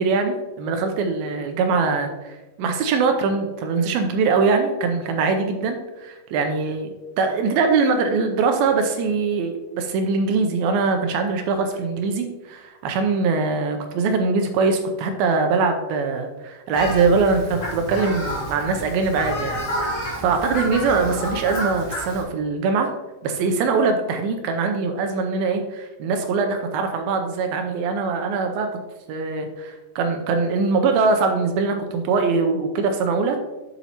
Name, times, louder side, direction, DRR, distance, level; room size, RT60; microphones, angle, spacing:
voice 1, 0.0-6.9 7.2-22.9 23.2-28.7 29.1-33.4, right 4 dB, 80° right, 5 dB, 2.1 m, -22 dB
Fowl, 16.7-22.2, equal, 35° left, 2.5 m, -30 dB
8.1 x 7.0 x 2.9 m, 1.1 s
omnidirectional pair, 4.9 m